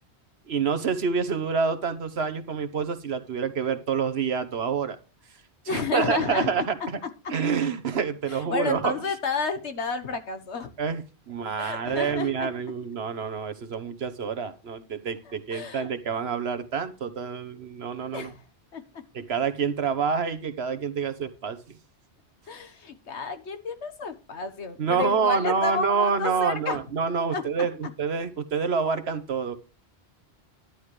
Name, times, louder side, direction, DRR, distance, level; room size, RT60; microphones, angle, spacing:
voice 1, 0.5-5.0 5.6-7.0 7.3-8.9 10.8-18.3 19.1-21.6 24.8-29.5, right 6 dB, 70° right, 11 dB, 1.4 m, -27 dB
voice 2, 5.7-6.7 7.2-7.3 8.3-10.7 11.6-12.5 15.2-15.9 18.1-18.4 18.7-18.8 22.5-26.8 27.3-27.4, left 4 dB, 85° left, 8 dB, 1.6 m, -31 dB
11.5 x 10.5 x 3.2 m, 0.30 s
omnidirectional pair, 1.1 m